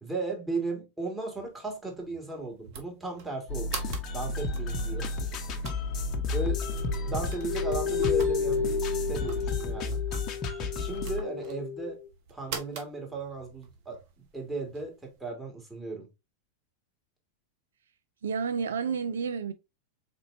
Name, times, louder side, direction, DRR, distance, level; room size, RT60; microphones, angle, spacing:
voice 1, 0.0-3.8 4.1-5.1 6.3-6.6 7.0-10.0 10.8-12.0 12.3-14.0 14.3-16.1, right 3 dB, 10° right, 2.0 m, -36 dB
sound 1, 1.3-15.2, right 6 dB, 55° right, 1.2 m, -46 dB
sound 2, 3.5-11.2, left 2 dB, 35° left, 0.8 m, -32 dB
sound 3, 6.4-12.1, left 6 dB, 65° left, 0.4 m, -32 dB
voice 2, 18.2-19.5, right 6 dB, 75° right, 0.4 m, -30 dB
4.3 x 4.1 x 2.6 m
figure-of-eight pair, 95°, 0 cm